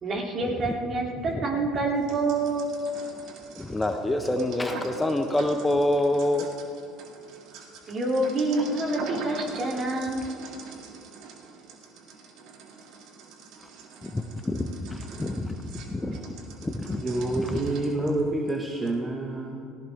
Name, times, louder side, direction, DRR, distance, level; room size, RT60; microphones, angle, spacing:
voice 1, 0.0-2.7 7.9-10.2, right 2 dB, 40° right, 0 dB, 3.2 m, -27 dB
voice 2, 1.3-1.6 3.5-6.5 14.0-15.5 15.9-16.2 16.6-17.0 17.3-17.6, left 1 dB, 15° left, 5 dB, 1.0 m, -27 dB
sound 1, 1.9-18.5 18.9-19.0, right 5 dB, 65° right, 2.0 m, -43 dB
voice 3, 17.0-19.6, right 2 dB, 25° right, 1 dB, 1.6 m, -28 dB
17.5 x 16.0 x 3.6 m, 2.3 s
hypercardioid pair, 70°, 0 cm